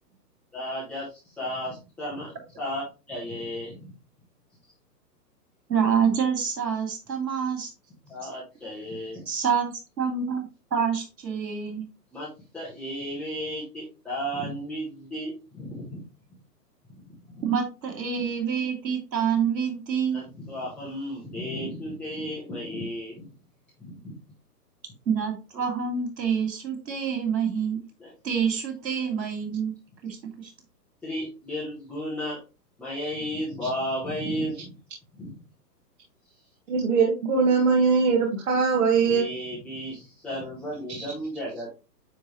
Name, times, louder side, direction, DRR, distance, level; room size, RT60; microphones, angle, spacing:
voice 1, 0.5-3.9 8.0-9.3 12.1-12.3 12.5-16.0 16.9-17.4 20.1-23.3 23.8-24.2 28.0-28.1 31.0-32.4 32.8-34.8 35.1-35.3 39.1-41.7, equal, ahead, -9 dB, 0.8 m, -34 dB
voice 2, 5.7-7.7 9.3-11.9 17.4-20.2 25.1-27.8 28.2-29.7 30.0-30.5, right 7 dB, 85° right, 4 dB, 2.6 m, -27 dB
voice 3, 36.7-39.3, right 5 dB, 50° right, -1 dB, 1.7 m, -21 dB
9.3 x 3.5 x 3.0 m, 0.30 s
hypercardioid pair, 155°, 50 cm